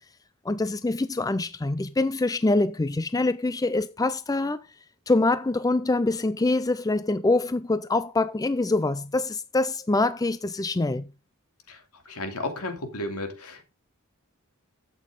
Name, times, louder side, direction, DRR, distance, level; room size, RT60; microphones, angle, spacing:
voice 1, 0.4-4.6 5.1-11.1, left 2 dB, 15° left, 0.4 m, -25 dB
voice 2, 12.1-13.6, left 1 dB, 80° left, 2.7 m, -33 dB
11.5 x 8.4 x 3.7 m
head